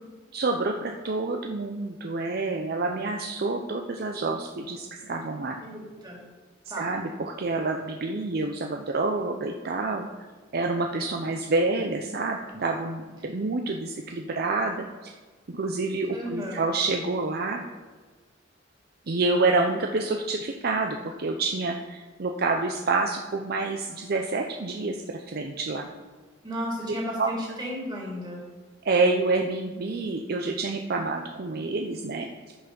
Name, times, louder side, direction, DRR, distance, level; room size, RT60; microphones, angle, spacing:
voice 1, 0.3-5.6 6.8-10.1 10.5-15.1 15.5-17.6 19.1-25.9 27.2-27.3 28.8-32.5, right 3 dB, 55° right, 3 dB, 0.6 m, -28 dB
voice 2, 5.6-6.2 6.7-6.9 16.1-16.6 26.4-28.4, equal, 25° right, -3 dB, 2.8 m, -34 dB
9.6 x 5.8 x 5.4 m, 1.4 s
head